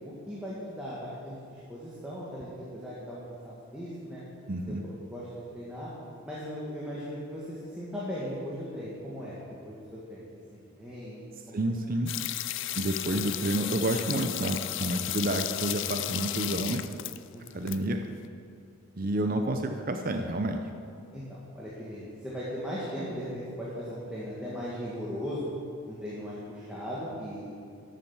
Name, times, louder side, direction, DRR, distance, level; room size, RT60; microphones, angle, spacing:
voice 1, 0.0-4.2 4.7-5.9 6.2-7.4 7.8-9.4 9.6-10.2 10.8-11.2 11.5-11.7 17.3-17.8 21.1-21.2 21.6-25.5 25.9-27.5, equal, 5° right, -8 dB, 1.7 m, -38 dB
voice 2, 4.5-4.8 11.5-12.1 12.7-16.8 17.5-18.0 19.0-20.6, right 1 dB, 40° right, 5 dB, 0.6 m, -29 dB
sound 1, 12.1-17.8 18.0-18.1, left 14 dB, 55° left, 0.4 m, -34 dB
12.5 x 7.5 x 7.2 m, 2.4 s
head